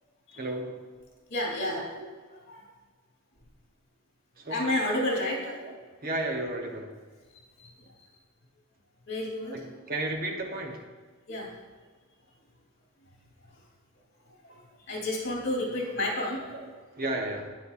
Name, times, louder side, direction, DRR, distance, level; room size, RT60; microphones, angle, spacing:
voice 1, 0.4-0.8 1.7-2.1 4.4-4.6 4.9-5.2 5.4-5.7 6.0-6.9 9.5-10.9 16.5-17.5, right 2 dB, 40° right, 2 dB, 0.9 m, -34 dB
voice 2, 1.3-1.8 2.5-2.7 4.5-5.4 7.6-7.8 9.1-9.6 11.3-11.5 14.4-14.6 14.9-16.4, left 1 dB, 50° left, -2 dB, 2.9 m, -30 dB
10.0 x 9.7 x 2.5 m, 1.4 s
head